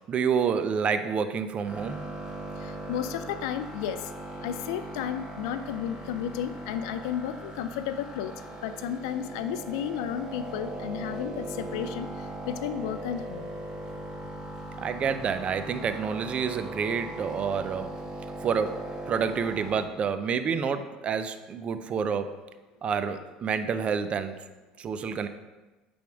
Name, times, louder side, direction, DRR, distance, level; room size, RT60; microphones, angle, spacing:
voice 1, 0.1-2.1 14.8-18.0 18.4-22.4 22.8-24.4 24.8-25.3, right 6 dB, 40° right, 10 dB, 0.5 m, -28 dB
sound 1, 1.6-19.8, right 2 dB, 25° right, 1.7 m, -39 dB
voice 2, 2.9-4.0 4.4-8.3 8.6-12.1 12.5-13.5, left 9 dB, 80° left, 11 dB, 0.4 m, -32 dB
8.9 x 3.5 x 3.5 m, 1.2 s
hypercardioid pair, 80°, 3 cm